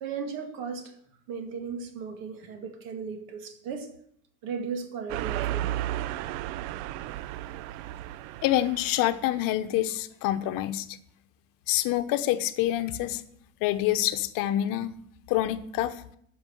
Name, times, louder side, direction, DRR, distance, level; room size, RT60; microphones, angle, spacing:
voice 1, 0.0-0.9 1.3-3.9 4.4-5.7, right 6 dB, 70° right, 5 dB, 2.2 m, -36 dB
sound 1, 5.1-9.3, right 13 dB, 90° right, 0.5 m, -33 dB
voice 2, 8.4-11.0 11.7-13.2 13.6-14.9 15.3-16.0, left 13 dB, 65° left, 11 dB, 0.9 m, -26 dB
10.5 x 6.2 x 6.4 m, 0.68 s
cardioid pair, 135°, 36 cm